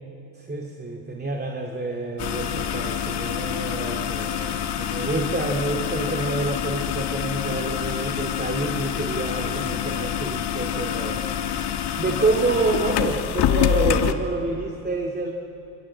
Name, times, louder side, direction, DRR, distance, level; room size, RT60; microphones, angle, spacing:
voice 1, 0.3-11.6 12.0-15.3, right 2 dB, 20° right, 2 dB, 2.6 m, -28 dB
sound 1, 2.2-14.1, left 9 dB, 55° left, 1.9 m, -26 dB
28.0 x 26.5 x 7.5 m, 2.9 s
supercardioid pair, 80°, 47 cm